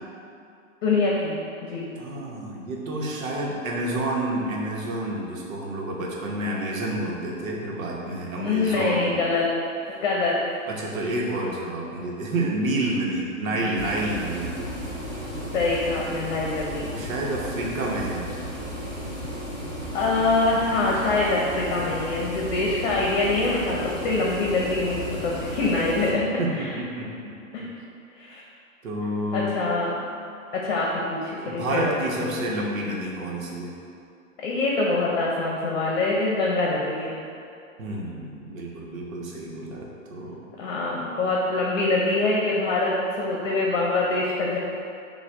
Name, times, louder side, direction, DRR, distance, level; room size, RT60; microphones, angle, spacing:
voice 1, 0.8-1.9 8.4-9.5 9.9-10.4 13.4-13.5 15.5-16.9 19.9-26.3 26.6-26.7 27.5-27.7 28.2-28.4 29.3-29.9 30.5-31.9 32.2-32.3 34.4-37.2 40.6-44.6, left 3 dB, 50° left, -3 dB, 0.8 m, -24 dB
voice 2, 2.0-9.2 9.9-10.0 10.7-14.5 16.8-18.3 26.4-27.7 28.8-29.6 31.4-33.7 37.8-40.5, right 1 dB, 75° right, -3 dB, 1.0 m, -29 dB
sound 1, 13.7-26.1, equal, 10° right, 0.5 m, -34 dB
6.2 x 2.3 x 3.4 m, 2.5 s
hypercardioid pair, 145°, 40 cm